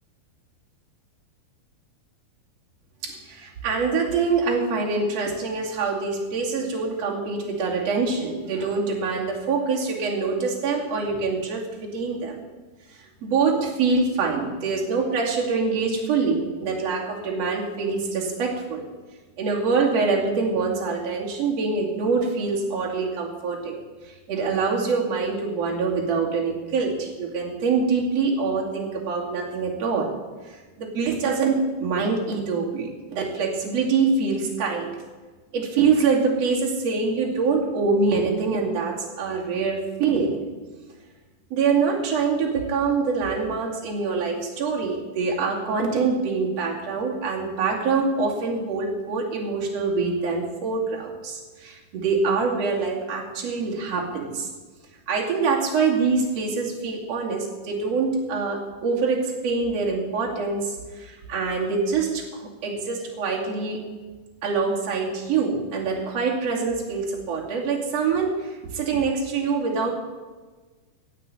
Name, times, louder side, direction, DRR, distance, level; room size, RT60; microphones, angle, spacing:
voice 1, 3.0-12.4 12.9-18.8 19.4-23.8 24.3-30.1 30.4-34.9 35.5-40.4 41.5-54.5 55.1-63.8 64.4-69.9, right 4 dB, 45° right, -2 dB, 3.3 m, -25 dB
16.0 x 6.1 x 9.1 m, 1.3 s
omnidirectional pair, 4.5 m